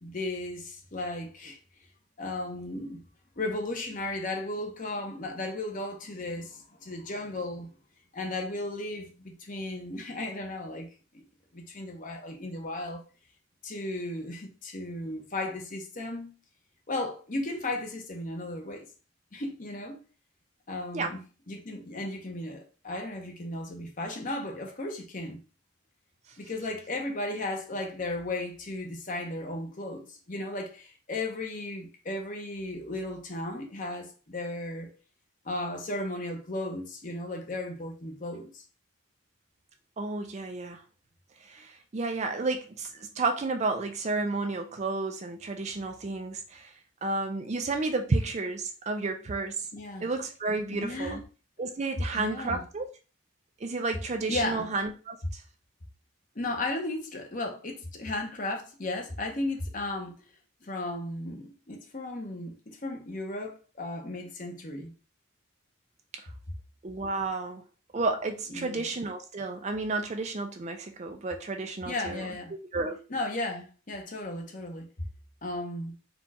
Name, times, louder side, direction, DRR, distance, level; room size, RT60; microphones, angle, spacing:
voice 1, 0.0-1.6 2.2-3.0 3.4-7.7 8.1-10.9 11.1-11.2 11.5-13.0 13.6-16.3 16.9-18.8 19.3-20.0 20.7-21.2 21.5-25.4 26.4-34.9 35.4-38.6 49.7-50.1 50.7-51.2 52.1-52.6 54.3-54.7 56.3-60.1 60.6-64.9 68.5-68.8 71.9-72.5 73.1-74.9 75.4-75.9, left 2 dB, 40° left, 0.9 m, -35 dB
voice 2, 40.0-40.8 41.4-46.7 47.0-49.7 50.0-51.2 51.6-52.9 53.6-55.4 66.1-66.3 66.8-67.6 67.9-72.3 72.7-73.0, right 3 dB, 30° right, 0.4 m, -31 dB
4.3 x 2.4 x 4.1 m
head